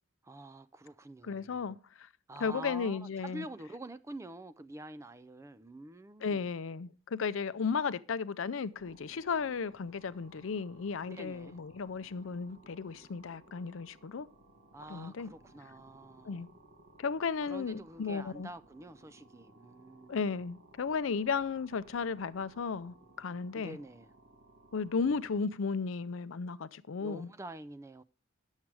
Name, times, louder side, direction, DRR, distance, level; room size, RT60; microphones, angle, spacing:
voice 1, 0.2-1.8 2.3-6.5 11.0-11.6 14.7-16.5 17.4-20.4 23.5-24.1 27.0-28.0, right 2 dB, 15° right, 0.4 m, -47 dB
voice 2, 1.2-2.1 2.4-3.4 6.2-14.3 14.9-15.3 16.2-16.5 17.0-18.5 20.1-23.8 24.7-27.3, left 5 dB, 75° left, 0.5 m, -34 dB
sound 1, 8.7-25.4, right 2 dB, 80° right, 1.7 m, -60 dB
10.5 x 7.3 x 4.7 m
head